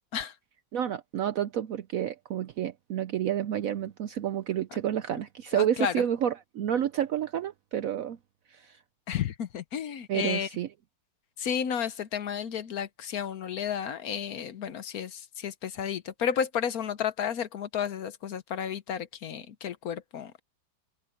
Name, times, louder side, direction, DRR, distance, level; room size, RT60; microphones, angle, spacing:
voice 1, 0.7-8.2 8.5-8.8 10.1-10.7, right 10 dB, 65° right, 0.8 m, -30 dB
voice 2, 5.5-6.0 9.1-10.5 11.4-20.4, left 8 dB, 60° left, 1.2 m, -32 dB
open air
omnidirectional pair, 1.9 m